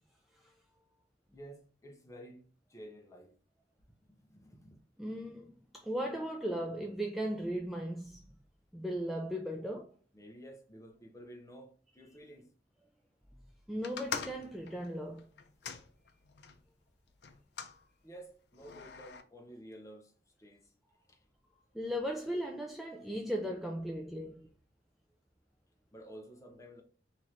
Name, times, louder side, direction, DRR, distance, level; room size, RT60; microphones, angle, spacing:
voice 1, 1.3-3.4 4.1-4.8 9.4-9.6 10.1-12.5 17.2-17.3 17.7-20.1 20.4-20.7 21.1-21.2 25.9-26.8, right 1 dB, 20° left, 0.7 m, -52 dB
voice 2, 5.0-8.2 8.7-9.8 13.7-15.3 21.7-24.4, equal, ahead, 0.3 m, -37 dB
sound 1, 13.8-16.6 17.2-17.8 18.6-19.2, left 6 dB, 70° left, 0.5 m, -43 dB
3.1 x 2.9 x 3.8 m
head